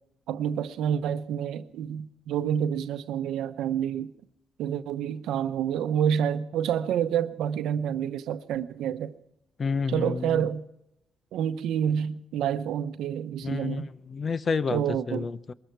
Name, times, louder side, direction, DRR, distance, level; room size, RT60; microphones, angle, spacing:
voice 1, 0.3-4.1 4.6-9.1 9.9-10.6 11.3-13.9 14.7-15.3, right 9 dB, 85° right, 0.8 m, -28 dB
voice 2, 9.6-10.5 13.4-15.5, left 5 dB, 40° left, 0.7 m, -30 dB
22.0 x 13.5 x 4.6 m
cardioid pair, 90°, 0 cm